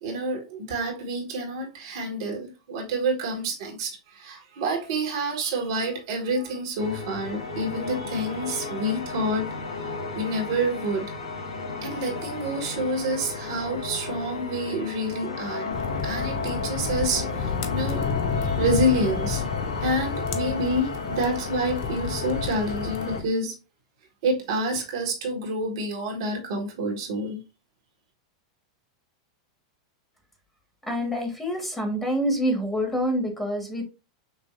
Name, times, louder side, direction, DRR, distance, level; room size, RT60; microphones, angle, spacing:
voice 1, 0.0-9.5 10.1-11.1 11.8-15.7 16.0-18.0 18.4-19.4 19.8-23.5 24.2-27.4, right 1 dB, 65° right, 1.7 m, -28 dB
sound 1, 6.8-23.2, left 3 dB, 80° left, 1.2 m, -33 dB
sound 2, 15.7-23.3, left 6 dB, 50° left, 0.7 m, -31 dB
voice 2, 30.8-33.8, equal, 5° left, 1.7 m, -26 dB
6.2 x 2.5 x 2.6 m
hypercardioid pair, 95°, 3 cm